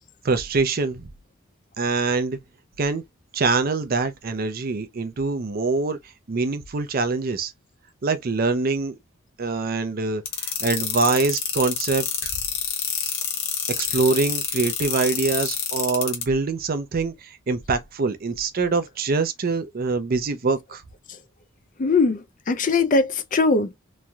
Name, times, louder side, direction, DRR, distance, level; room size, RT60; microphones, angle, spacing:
voice 1, 0.2-1.1 1.8-2.4 2.8-3.0 3.3-6.0 6.3-7.5 8.0-9.0 9.4-12.3 13.0-13.1 13.8-20.8, right 3 dB, 45° right, 0.5 m, -24 dB
sound 1, 10.3-16.2, left 8 dB, 65° left, 1.0 m, -27 dB
voice 2, 21.8-23.8, left 3 dB, 40° left, 0.4 m, -21 dB
3.1 x 2.6 x 2.2 m
head